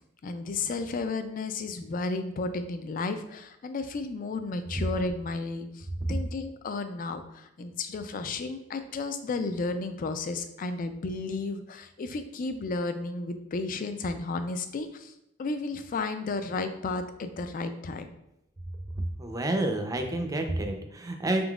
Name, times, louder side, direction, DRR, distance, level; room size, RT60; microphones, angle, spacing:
voice 1, 0.2-15.1 15.4-18.1, left 3 dB, 45° left, 9 dB, 0.4 m, -33 dB
voice 2, 19.2-21.4, right 1 dB, 20° right, 4 dB, 0.5 m, -29 dB
5.0 x 3.8 x 2.3 m, 0.81 s
head